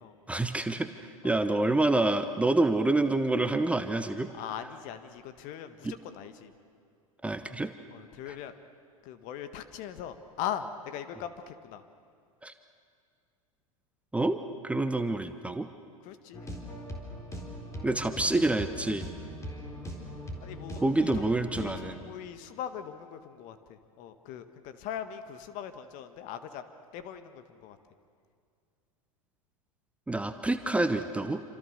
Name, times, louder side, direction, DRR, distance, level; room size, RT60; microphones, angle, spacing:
voice 1, 0.3-4.3 5.8-5.9 7.2-7.7 12.4-12.5 14.1-14.4 14.6-15.7 17.8-19.1 20.8-22.0 30.1-31.4, right 2 dB, 5° right, 9 dB, 1.0 m, -27 dB
voice 2, 4.3-6.5 7.9-8.5 9.0-11.8 16.0-16.5 20.4-26.6 26.9-27.8, left 9 dB, 45° left, 10 dB, 1.7 m, -40 dB
sound 1, 16.3-21.9, equal, 15° left, 4.0 m, -40 dB
27.5 x 26.5 x 6.7 m, 2.2 s
figure-of-eight pair, 95°, 18 cm